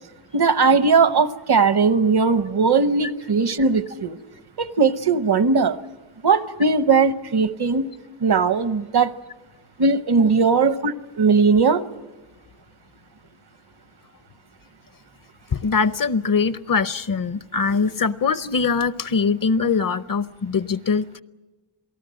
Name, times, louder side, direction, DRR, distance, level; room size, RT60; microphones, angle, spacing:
voice 1, 0.3-4.2 4.6-5.8 6.2-7.9 8.2-9.1 9.8-11.8, right 4 dB, 60° right, 13 dB, 0.9 m, -19 dB
voice 2, 15.5-21.2, left 5 dB, 50° left, 15 dB, 0.7 m, -22 dB
27.5 x 18.5 x 7.6 m, 1.2 s
wide cardioid pair, 130°, 45 cm